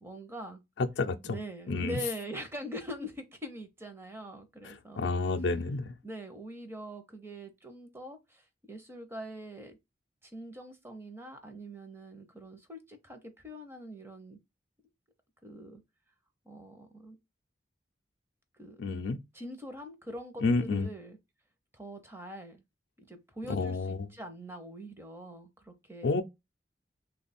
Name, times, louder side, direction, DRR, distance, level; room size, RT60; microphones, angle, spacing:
voice 1, 0.0-0.6 1.2-5.1 6.0-8.4 8.7-9.8 10.2-14.4 15.4-15.8 16.5-17.2 18.6-18.8 19.3-21.2 21.7-22.6 23.0-26.2, equal, 15° right, 0.6 m, -43 dB
voice 2, 0.8-1.4 1.7-2.0 4.6-6.0 18.8-19.2 20.4-20.9 23.5-24.1 26.0-26.2, left 3 dB, 65° left, 0.4 m, -30 dB
3.2 x 2.3 x 4.1 m
head